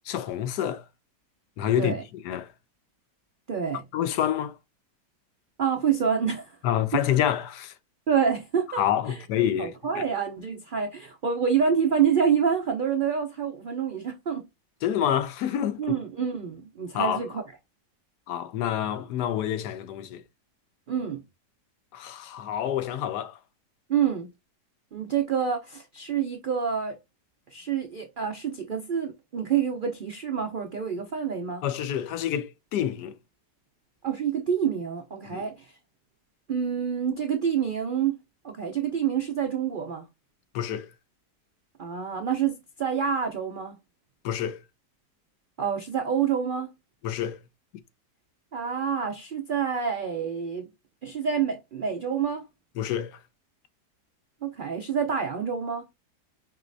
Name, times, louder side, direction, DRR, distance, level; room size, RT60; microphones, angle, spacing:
voice 1, 0.1-0.8 1.6-2.0 2.2-2.5 3.9-4.6 6.6-7.7 8.8-10.0 14.8-16.0 16.9-17.2 18.3-20.2 21.9-23.4 31.6-33.2 35.3-35.4 40.5-40.9 44.2-44.6 47.0-47.4 52.8-53.2, left 10 dB, 90° left, 1.2 m, -27 dB
voice 2, 3.5-3.8 5.6-6.6 6.9-7.0 8.1-8.8 9.6-14.4 15.8-17.4 20.9-21.2 23.9-24.3 24.9-27.0 27.5-31.6 34.0-35.7 36.5-38.2 38.4-40.0 41.8-43.8 45.6-46.7 48.5-50.7 51.0-52.5 54.4-55.8, right 7 dB, 80° right, 0.4 m, -27 dB
4.9 x 3.0 x 2.5 m
omnidirectional pair, 1.7 m